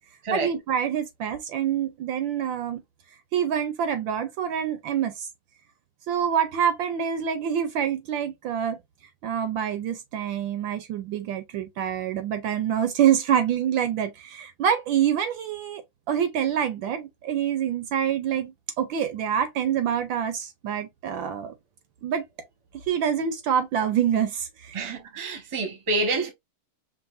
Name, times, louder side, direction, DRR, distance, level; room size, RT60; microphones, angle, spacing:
voice 1, 0.3-2.8 3.3-5.3 6.1-8.8 9.2-15.8 16.1-21.5 22.0-22.2 22.9-25.0, right 9 dB, 75° right, 1.3 m, -26 dB
voice 2, 24.7-26.3, right 2 dB, 25° right, 0.7 m, -27 dB
5.3 x 2.5 x 2.4 m
omnidirectional pair, 2.3 m